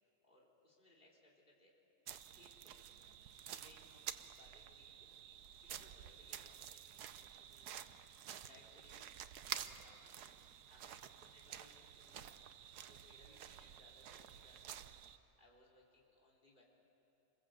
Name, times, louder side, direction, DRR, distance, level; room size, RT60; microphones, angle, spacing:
voice 1, 0.2-1.7 2.0-5.2 5.6-6.9 7.1-7.9 8.3-9.1 9.4-10.2 10.7-12.3 12.8-14.8 15.4-16.6, left 2 dB, 30° left, -3 dB, 3.9 m, -67 dB
sound 1, 2.1-15.2, right 10 dB, 85° right, 1.3 m, -51 dB
27.0 x 21.5 x 7.9 m, 2.9 s
omnidirectional pair, 1.6 m